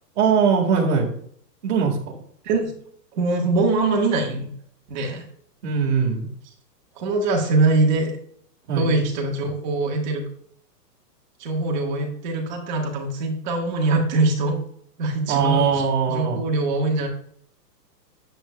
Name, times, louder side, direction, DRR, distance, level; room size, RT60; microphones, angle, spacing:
voice 1, 0.2-1.1 1.6-2.0 5.6-6.3 8.7-8.9 15.3-16.4, right 6 dB, 45° right, -3 dB, 1.9 m, -21 dB
voice 2, 3.1-4.5 4.9-5.2 6.9-8.1 8.8-10.2 11.4-14.6 15.0-17.1, right 3 dB, 25° right, 1 dB, 1.6 m, -22 dB
10.5 x 8.1 x 2.3 m, 0.63 s
hypercardioid pair, 175°, 49 cm